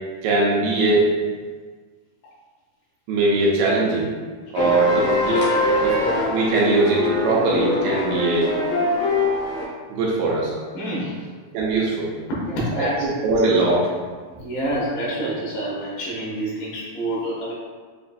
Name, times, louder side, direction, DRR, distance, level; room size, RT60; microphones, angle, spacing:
voice 1, 0.2-1.2 3.1-4.1 4.5-5.4 5.8-6.0 6.3-8.5 9.9-10.5 11.5-12.1 12.7-13.9, right 2 dB, 80° right, -4 dB, 2.3 m, -21 dB
sound 1, 4.5-9.6, left 1 dB, 65° left, 1.3 m, -22 dB
voice 2, 10.7-11.2 12.3-13.1 14.3-17.5, right 1 dB, 85° left, -7 dB, 3.2 m, -27 dB
6.9 x 2.5 x 2.3 m, 1.5 s
omnidirectional pair, 4.3 m